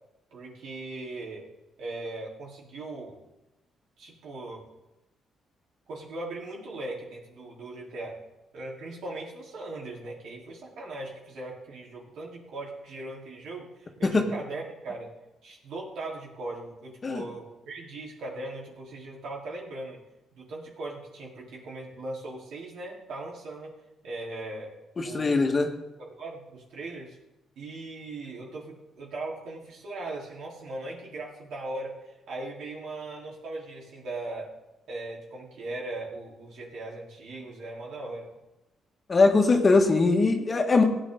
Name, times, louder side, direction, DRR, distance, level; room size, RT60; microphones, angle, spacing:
voice 1, 0.3-1.4 1.8-3.2 4.0-4.6 5.9-8.2 8.5-15.1 15.4-20.0 20.3-23.7 24.0-24.7 25.0-25.5 26.0-27.2 27.6-34.5 34.9-38.3, right 2 dB, 75° right, -3 dB, 4.3 m, -39 dB
voice 2, 25.0-25.7 39.1-40.8, left 3 dB, 35° left, 3 dB, 1.9 m, -21 dB
17.0 x 9.0 x 4.0 m, 0.98 s
cardioid pair, 95°, 0 cm